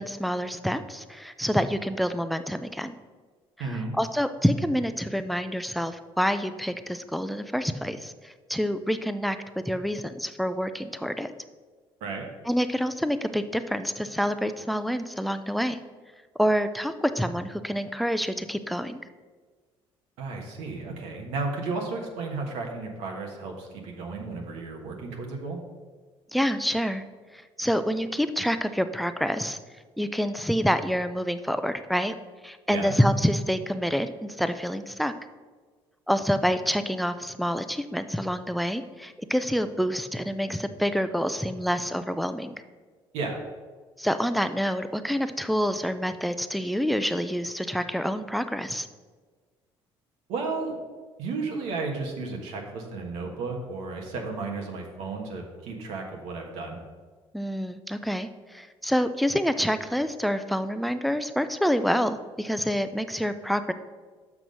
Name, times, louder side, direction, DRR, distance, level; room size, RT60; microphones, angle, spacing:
voice 1, 0.0-3.0 3.6-9.4 9.7-11.3 12.5-15.8 16.4-19.0 26.3-27.0 27.3-29.6 30.0-32.1 32.4-35.1 36.1-42.5 44.0-48.9 57.3-63.7, equal, ahead, 10 dB, 0.4 m, -27 dB
voice 2, 3.6-3.9 12.0-12.3 20.2-25.6 32.7-32.9 43.1-43.4 50.3-50.8 51.2-56.8, right 3 dB, 85° right, 1 dB, 1.3 m, -33 dB
6.1 x 6.0 x 5.3 m, 1.4 s
cardioid pair, 100°, 11 cm